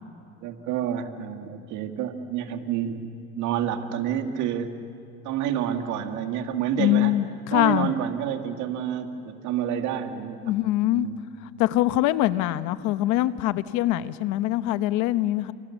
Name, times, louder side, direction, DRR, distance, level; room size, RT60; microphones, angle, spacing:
voice 1, 0.4-3.1 3.4-4.8 5.2-7.1 7.5-10.5 10.9-11.2, right 9 dB, 85° right, 6 dB, 2.1 m, -29 dB
voice 2, 6.8-7.9 10.4-11.1 11.6-15.5, left 15 dB, 90° left, 13 dB, 1.0 m, -23 dB
28.5 x 27.0 x 7.2 m, 2.7 s
cardioid pair, 100°, 29 cm